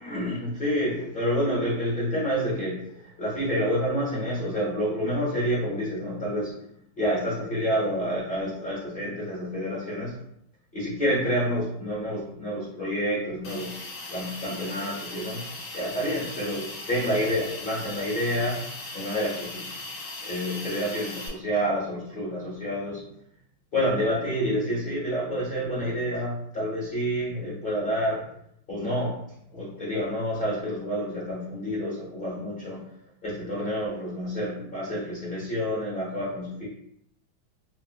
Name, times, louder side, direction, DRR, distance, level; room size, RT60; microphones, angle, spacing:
voice 1, 0.0-6.6 7.0-10.1 10.7-19.8 20.2-23.0 23.7-28.3 28.7-29.2 29.5-32.8 33.2-36.7, equal, 40° left, -7 dB, 0.8 m, -28 dB
Hiss, 13.4-21.3, left 2 dB, 65° left, 1.3 m, -38 dB
3.6 x 2.4 x 2.2 m, 0.74 s
omnidirectional pair, 2.2 m